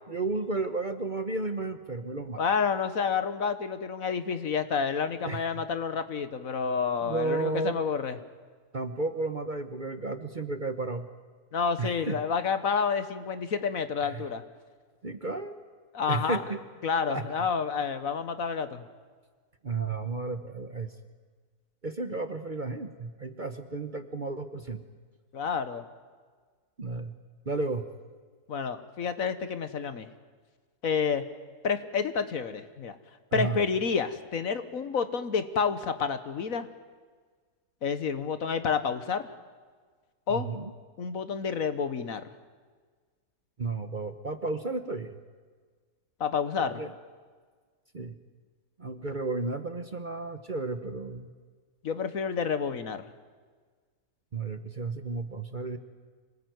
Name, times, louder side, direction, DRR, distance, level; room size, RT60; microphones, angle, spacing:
voice 1, 0.1-2.4 5.2-5.5 7.0-7.8 8.7-11.1 11.8-12.2 14.1-14.2 15.0-15.6 16.1-16.6 17.1-17.4 19.6-20.9 21.8-24.8 26.8-27.1 27.5-27.9 33.3-33.6 40.3-40.7 43.6-45.2 46.6-46.9 47.9-48.2 48.8-51.3 54.3-55.8, right 3 dB, 35° right, 9 dB, 1.1 m, -33 dB
voice 2, 2.4-8.1 11.5-14.4 15.9-16.4 16.8-18.8 25.3-25.8 28.5-30.1 30.8-31.2 31.6-32.9 33.3-36.7 37.8-39.3 40.3-40.5 41.0-42.3 46.2-46.8 51.8-53.1, left 6 dB, 60° left, 11 dB, 1.5 m, -29 dB
26.0 x 19.0 x 9.4 m, 1.5 s
omnidirectional pair, 1.7 m